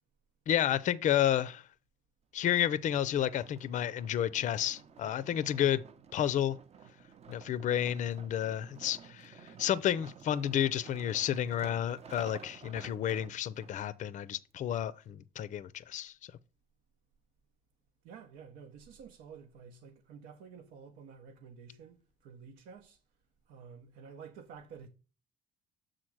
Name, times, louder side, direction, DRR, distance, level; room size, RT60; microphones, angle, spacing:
voice 1, 0.5-1.6 2.3-5.8 6.1-6.6 7.3-16.3, left 10 dB, 45° left, 0.4 m, -31 dB
sound 1, 2.7-13.7 14.4-14.5, right 7 dB, 40° right, 0.6 m, -52 dB
voice 2, 18.0-23.0 23.5-24.9, right 6 dB, 85° right, 0.8 m, -51 dB
6.5 x 3.8 x 6.1 m
cardioid pair, 110°, 17 cm